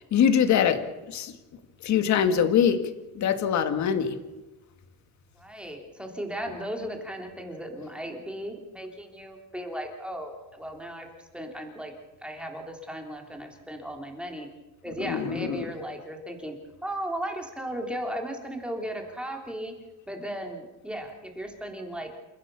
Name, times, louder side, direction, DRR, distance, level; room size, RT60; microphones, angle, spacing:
voice 1, 0.1-0.8 1.1-1.3 1.8-2.8 3.2-4.2 15.0-15.7, left 8 dB, 50° left, 8 dB, 2.2 m, -23 dB
voice 2, 5.4-11.1 11.3-11.9 12.2-14.5 14.8-16.6 16.8-19.7 20.1-22.1, equal, 5° right, 2 dB, 3.4 m, -36 dB
28.5 x 15.5 x 7.0 m, 1.1 s
cardioid pair, 155°, 35 cm